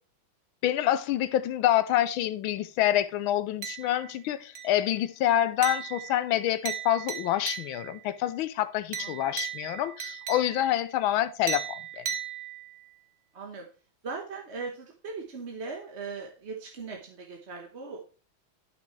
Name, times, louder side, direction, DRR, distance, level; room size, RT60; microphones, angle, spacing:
voice 1, 0.6-12.1, left 12 dB, 85° left, 1.5 m, -27 dB
sound 1, 3.6-4.2 4.5-5.0 5.6-8.0 8.9-10.8 11.5-12.9, right 8 dB, 60° right, 1.6 m, -37 dB
voice 2, 9.0-9.4 13.3-13.7 14.0-18.0, right 4 dB, 40° right, 1.2 m, -39 dB
11.5 x 6.1 x 3.2 m
omnidirectional pair, 2.2 m